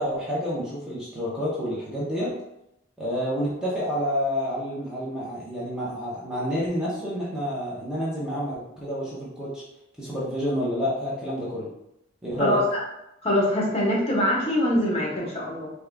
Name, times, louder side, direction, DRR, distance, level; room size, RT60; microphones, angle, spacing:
voice 1, 0.0-2.3 3.0-9.6 10.0-11.7 12.2-12.6, equal, 5° right, -7 dB, 0.7 m, -29 dB
voice 2, 12.4-12.8 13.2-15.7, left 1 dB, 30° left, -4 dB, 0.9 m, -23 dB
3.5 x 2.3 x 3.3 m, 0.83 s
head